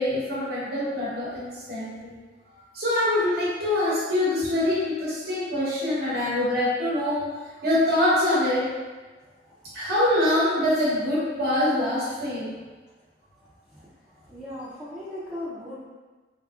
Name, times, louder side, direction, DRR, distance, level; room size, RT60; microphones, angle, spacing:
voice 1, 0.0-2.1 2.7-7.2 7.6-8.6 9.7-12.5, left 1 dB, 60° right, -8 dB, 1.0 m, -24 dB
voice 2, 14.2-15.9, left 1 dB, 5° right, -10 dB, 0.5 m, -38 dB
3.5 x 2.7 x 2.4 m, 1.3 s
head